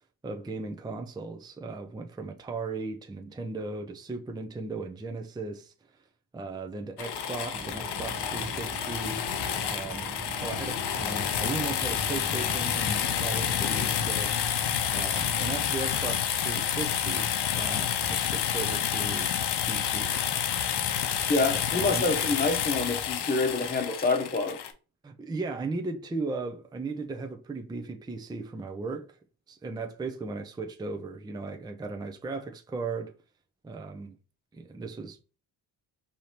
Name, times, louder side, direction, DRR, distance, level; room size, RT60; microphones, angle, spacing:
voice 1, 0.2-5.7 6.3-9.2 9.7-10.1 10.4-14.3 14.9-19.3 19.6-20.3 21.5-22.1 25.0-29.1 29.5-33.2 33.6-34.1 34.5-35.2, right 3 dB, 10° right, 0.5 m, -36 dB
sound 1, 7.0-24.7, left 8 dB, 75° left, 0.8 m, -29 dB
sound 2, 7.5-13.6, right 4 dB, 30° right, 0.9 m, -43 dB
voice 2, 21.3-24.6, left 3 dB, 20° left, 0.9 m, -27 dB
4.8 x 2.8 x 2.9 m
cardioid pair, 80°, 41 cm